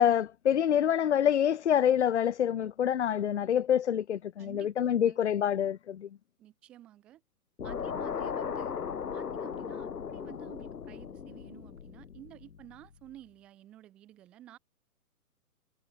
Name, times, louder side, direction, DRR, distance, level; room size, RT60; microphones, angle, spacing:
voice 1, 0.0-6.1, left 9 dB, 50° left, 0.5 m, -26 dB
voice 2, 4.4-5.2 6.4-7.2 7.6-8.8 9.1-14.6, right 13 dB, ahead, 0.6 m, -52 dB
sound 1, 7.6-12.9, left 7 dB, 80° left, 2.6 m, -37 dB
hypercardioid pair, 165°, 46 cm